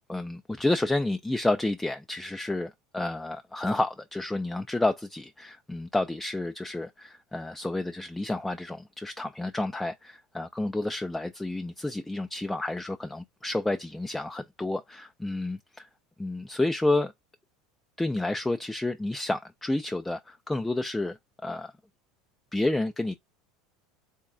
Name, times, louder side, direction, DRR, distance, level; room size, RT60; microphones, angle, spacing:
voice 1, 0.1-15.9 16.2-17.1 18.0-21.2 21.4-21.7 22.5-23.2, left 2 dB, 5° left, 0.3 m, -30 dB
3.8 x 2.2 x 3.7 m
figure-of-eight pair, 75°, 2 cm